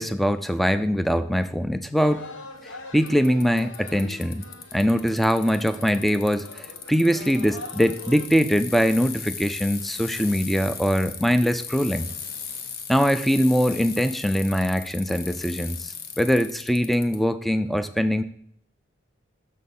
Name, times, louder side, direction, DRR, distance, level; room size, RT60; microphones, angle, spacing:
voice 1, 0.0-2.2 2.9-4.4 4.7-12.1 12.9-18.2, equal, ahead, 12 dB, 0.3 m, -22 dB
sound 1, 2.0-8.3, left 2 dB, 85° left, 1.0 m, -42 dB
Bicycle, 3.1-17.2, left 7 dB, 50° left, 0.8 m, -37 dB
6.6 x 6.4 x 5.4 m, 0.66 s
head